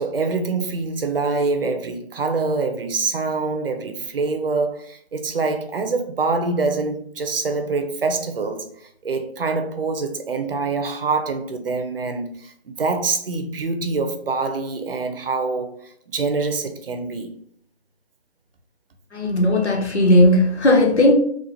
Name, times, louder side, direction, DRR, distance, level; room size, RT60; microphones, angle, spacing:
voice 1, 0.0-8.6 9.0-17.3, right 3 dB, 55° right, 0.7 m, -25 dB
voice 2, 19.1-21.1, left 1 dB, 80° left, 1.1 m, -16 dB
3.8 x 2.4 x 2.8 m
figure-of-eight pair, 150°, 33 cm